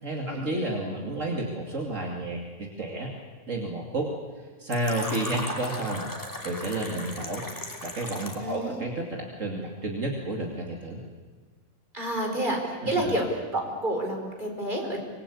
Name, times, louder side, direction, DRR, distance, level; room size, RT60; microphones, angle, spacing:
voice 1, 0.0-3.1 3.5-4.1 4.4-6.1 6.4-7.4 7.8-11.0 12.8-13.1, right 2 dB, 60° right, 0 dB, 3.0 m, -31 dB
Fill (with liquid), 4.7-8.5, equal, 15° left, 2.9 m, -37 dB
voice 2, 8.4-8.8 11.9-15.0, right 1 dB, 35° right, 2 dB, 4.9 m, -29 dB
25.5 x 21.5 x 8.5 m, 1.4 s
omnidirectional pair, 1.5 m